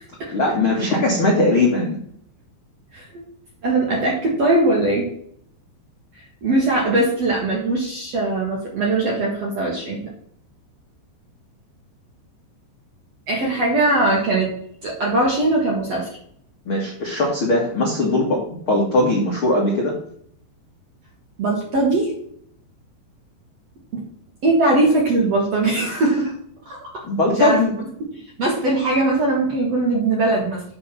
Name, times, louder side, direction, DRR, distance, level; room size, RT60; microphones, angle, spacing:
voice 1, 0.3-2.0 16.6-18.4 18.7-19.9 27.0-27.7, left 2 dB, 60° left, -2 dB, 1.3 m, -19 dB
voice 2, 3.6-5.1 6.4-10.0 13.3-14.5 14.8-16.1 21.4-22.1 23.9-24.0 24.4-26.3 26.7-27.0 27.3-27.6 28.4-30.6, right 2 dB, 55° right, -3 dB, 1.9 m, -20 dB
8.5 x 4.8 x 5.8 m, 0.65 s
omnidirectional pair, 5.4 m